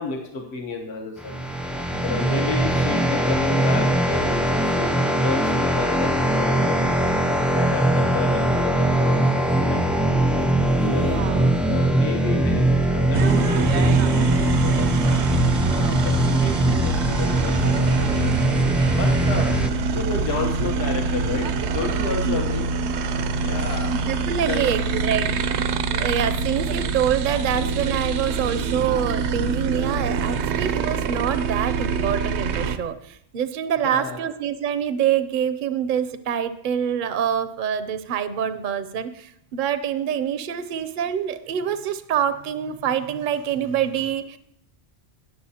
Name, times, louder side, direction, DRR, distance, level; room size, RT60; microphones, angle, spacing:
voice 1, 0.0-1.4 2.0-6.8 7.5-9.3 9.6-9.8 10.7-15.3 15.7-19.5 19.9-22.7 23.4-23.9 24.5-24.8 33.8-34.2, left 3 dB, 70° left, 1 dB, 1.3 m, -31 dB
sound 1, 1.2-19.7, right 1 dB, ahead, 0.5 m, -21 dB
voice 2, 2.2-2.7 10.7-11.5 22.2-22.6 24.1-25.6 25.9-44.4, right 8 dB, 55° right, 12 dB, 0.6 m, -26 dB
sound 2, 13.1-32.8, right 4 dB, 80° right, 0.9 m, -25 dB
19.0 x 6.8 x 2.8 m, 0.73 s
omnidirectional pair, 1.1 m